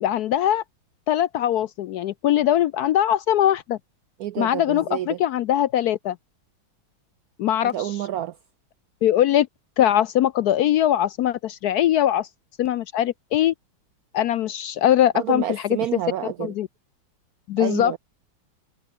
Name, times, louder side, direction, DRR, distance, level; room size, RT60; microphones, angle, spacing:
voice 1, 0.0-0.6 1.1-3.8 4.4-6.2 7.4-8.0 9.0-9.5 9.8-12.3 12.6-13.5 14.1-15.8 16.4-16.7 17.5-17.9, left 11 dB, 70° left, 0.9 m, -21 dB
voice 2, 4.2-5.2 7.7-8.3 15.1-16.5 17.6-18.0, right 12 dB, 75° right, 0.8 m, -29 dB
omnidirectional pair, 2.1 m